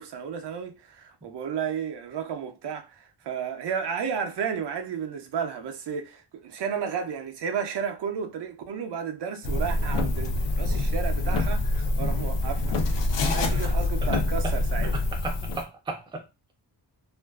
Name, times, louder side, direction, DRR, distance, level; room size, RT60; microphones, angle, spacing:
voice 1, 0.0-12.8 13.3-14.9, right 7 dB, 70° right, 0.5 m, -33 dB
sound 1, 9.4-15.6, left 2 dB, 80° left, 0.5 m, -25 dB
voice 2, 13.2-13.7 14.1-14.5 15.2-16.2, right 2 dB, 10° right, 0.4 m, -35 dB
2.5 x 2.2 x 2.2 m
wide cardioid pair, 180°, 42 cm